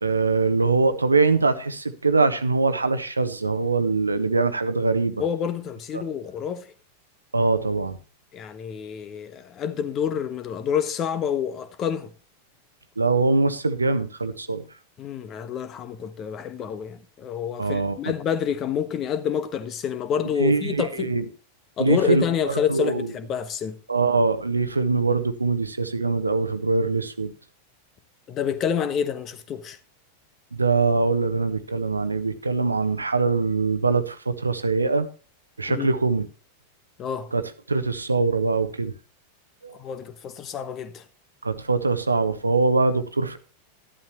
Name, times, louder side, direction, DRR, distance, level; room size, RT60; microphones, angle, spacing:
voice 1, 0.0-5.2 5.9-6.0 7.3-8.0 13.0-14.6 17.6-18.0 20.4-21.3 21.8-23.1 23.9-27.3 30.5-35.1 35.6-36.3 37.3-37.4 37.7-38.9 39.6-39.8 41.4-43.4, right 3 dB, 80° right, 1.0 m, -23 dB
voice 2, 5.2-6.7 8.3-12.1 15.0-21.1 21.8-23.8 28.3-29.8 35.7-35.9 37.0-37.3 39.8-41.0, left 8 dB, 30° left, 1.3 m, -28 dB
12.5 x 11.5 x 3.0 m
figure-of-eight pair, 90°, 0 cm